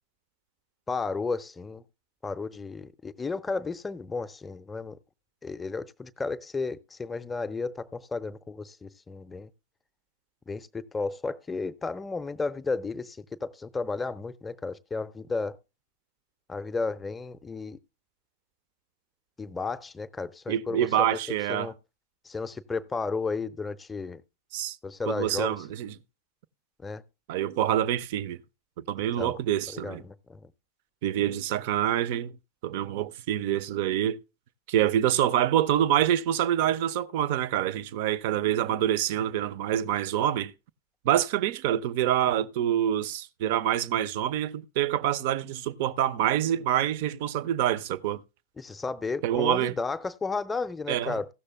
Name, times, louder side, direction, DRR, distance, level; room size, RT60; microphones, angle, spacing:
voice 1, 0.9-1.8 2.2-5.0 5.4-9.5 10.5-15.6 16.5-17.8 19.4-21.2 21.5-21.7 22.2-24.2 24.8-25.7 26.8-27.0 29.2-29.4 29.7-30.5 48.6-51.3, left 4 dB, 15° left, 0.5 m, -33 dB
voice 2, 20.5-21.7 24.5-24.8 25.1-25.9 27.3-28.4 28.8-30.0 31.0-32.3 32.6-34.2 34.7-40.5 41.0-48.2 49.2-49.7 50.9-51.2, right 11 dB, 50° right, 0.5 m, -26 dB
15.5 x 6.6 x 3.4 m
figure-of-eight pair, 90°, 0 cm